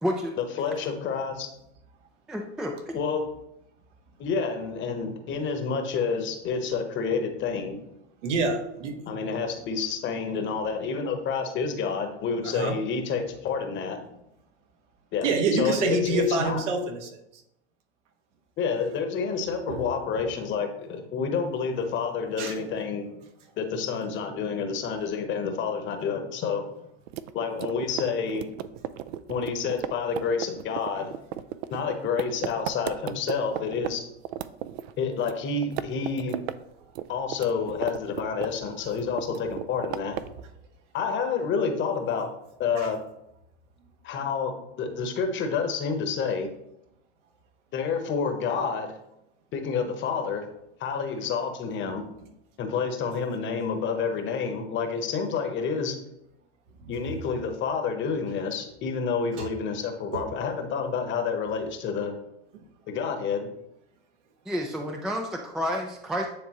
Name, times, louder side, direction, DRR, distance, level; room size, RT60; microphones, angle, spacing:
voice 1, 0.4-1.5 2.9-3.3 4.2-7.8 9.1-14.0 15.1-16.6 18.6-23.1 23.6-26.6 27.3-28.5 29.3-31.1 31.7-34.0 35.0-36.4 37.1-40.2 40.9-42.3 42.6-43.0 44.0-46.5 47.7-48.9 49.5-50.5 50.8-52.0 52.6-55.9 56.9-62.1 62.9-63.5, left 5 dB, 30° left, 5 dB, 1.0 m, -29 dB
voice 2, 2.3-3.0 64.5-66.3, equal, ahead, 2 dB, 0.3 m, -30 dB
voice 3, 8.2-9.0 12.4-12.8 15.2-17.1 19.7-19.9 20.1-20.2 22.4-22.5 42.8-42.9 56.8-56.9 59.4-59.5 60.1-60.2 62.5-62.6, right 3 dB, 80° right, 4 dB, 1.3 m, -27 dB
sound 1, 27.1-33.9 34.3-35.4 35.6-36.6 36.8-38.7 39.0-40.4, right 12 dB, 65° right, 0.5 m, -34 dB
9.5 x 3.5 x 3.0 m, 0.82 s
supercardioid pair, 125°, 36 cm